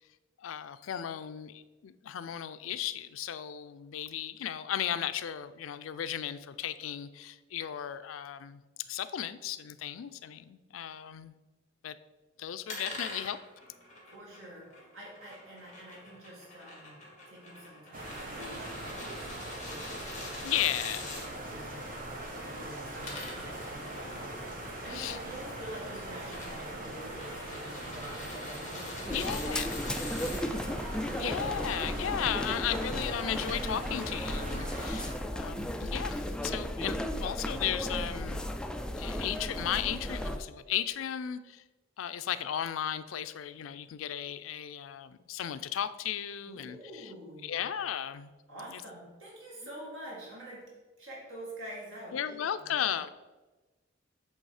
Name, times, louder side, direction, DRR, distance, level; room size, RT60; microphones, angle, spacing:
voice 1, 0.4-11.4 11.8-12.0 12.4-13.4 20.4-21.1 24.9-25.2 29.1-29.8 31.2-38.5 39.0-41.6 42.0-47.1 47.4-48.3 48.7-48.8 52.1-53.1, left 10 dB, 90° left, 13 dB, 0.4 m, -35 dB
sound 1, 12.7-21.3 22.8-30.4, left 3 dB, 35° left, 1.7 m, -45 dB
voice 2, 14.1-17.0 17.3-30.5 46.5-47.7 48.5-52.9, right 1 dB, 85° right, -5 dB, 2.2 m, -47 dB
sound 2, 17.9-35.1, right 1 dB, 45° right, 1.2 m, -41 dB
sound 3, 29.1-40.4, left 1 dB, 5° left, 0.3 m, -35 dB
7.8 x 3.5 x 4.8 m, 1.2 s
head